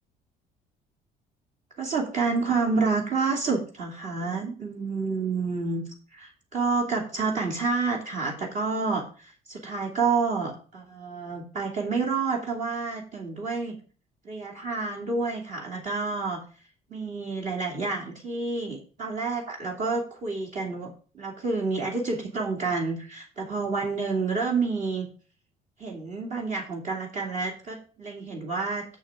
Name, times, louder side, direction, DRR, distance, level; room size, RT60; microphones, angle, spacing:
voice 1, 1.8-5.8 6.1-13.8 14.2-16.4 16.9-20.9 21.1-25.1 25.8-28.8, right 4 dB, 45° right, -1 dB, 2.5 m, -29 dB
6.9 x 6.3 x 7.2 m, 0.41 s
cardioid pair, 110°, 17 cm